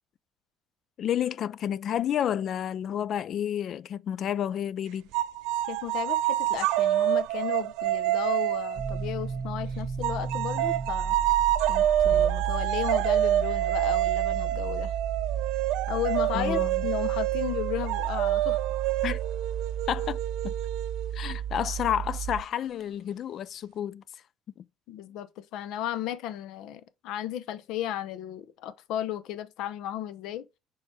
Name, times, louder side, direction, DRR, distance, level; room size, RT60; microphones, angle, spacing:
voice 1, 1.0-5.1 16.3-16.8 19.0-19.2 19.9-20.2 20.4-20.5 21.1-24.0, left 10 dB, 40° left, 0.3 m, -30 dB
sound 1, 5.1-9.5 10.0-21.4, right 13 dB, 75° right, 0.5 m, -27 dB
voice 2, 5.7-11.2 11.7-14.9 15.9-18.6 24.9-30.5, left 11 dB, 65° left, 0.7 m, -34 dB
sound 2, 8.8-22.4, right 7 dB, 30° right, 0.8 m, -33 dB
7.0 x 4.7 x 3.3 m
cardioid pair, 160°, 0 cm